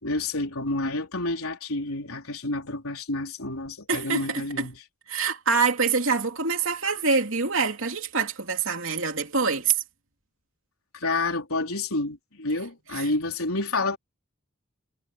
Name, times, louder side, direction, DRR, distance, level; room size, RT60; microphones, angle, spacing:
voice 1, 0.0-4.8 10.9-14.0, left 2 dB, 80° left, 4.0 m, -29 dB
voice 2, 3.9-4.4 5.1-9.7 12.9-13.0, right 5 dB, 65° right, 3.1 m, -25 dB
head